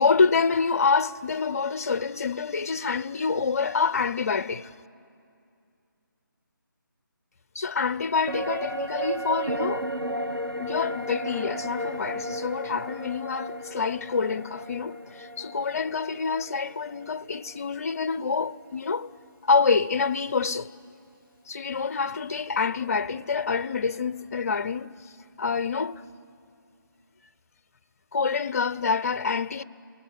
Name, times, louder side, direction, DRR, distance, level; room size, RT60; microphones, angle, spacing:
voice 1, 0.0-4.7 7.5-9.9 10.6-19.1 19.4-20.7 21.5-24.9 25.4-26.0 28.1-29.6, left 5 dB, 45° left, 0.6 m, -26 dB
sound 1, 8.3-17.8 18.1-18.2, right 1 dB, 90° right, 1.2 m, -34 dB
28.0 x 20.5 x 10.0 m
figure-of-eight pair, 150°, 11 cm